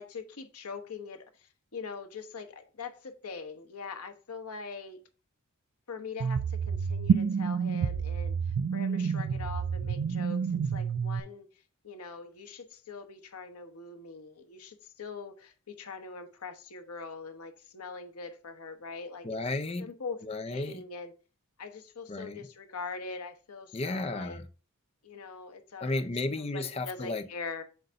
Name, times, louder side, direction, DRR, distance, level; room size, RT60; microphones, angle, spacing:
voice 1, 0.0-5.1 5.9-11.5 11.8-19.3 19.8-20.2 20.5-21.1 21.6-24.4 25.0-26.0 26.5-27.6, left 4 dB, 85° left, 1.0 m, -42 dB
sound 1, 6.2-11.2, right 6 dB, 65° right, 0.4 m, -29 dB
voice 2, 19.2-19.9 20.2-20.8 22.1-22.5 23.7-24.5 25.8-27.3, left 2 dB, 25° left, 0.5 m, -33 dB
7.8 x 2.6 x 5.5 m
head